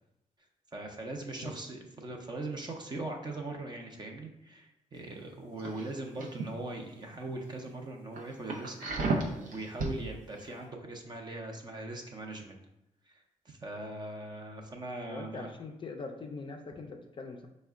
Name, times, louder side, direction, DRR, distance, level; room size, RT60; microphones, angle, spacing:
voice 1, 0.7-8.7 9.3-12.6 13.1-15.5, right 2 dB, 30° right, 2 dB, 0.6 m, -40 dB
sound 1, 5.6-6.5 6.9-7.2 7.6-7.7 8.1-10.0 10.4-10.5, right 3 dB, 85° right, 0.6 m, -33 dB
voice 2, 15.1-17.5, left 4 dB, 40° left, 4 dB, 0.4 m, -42 dB
4.6 x 2.1 x 3.5 m, 0.86 s
cardioid pair, 110°, 14 cm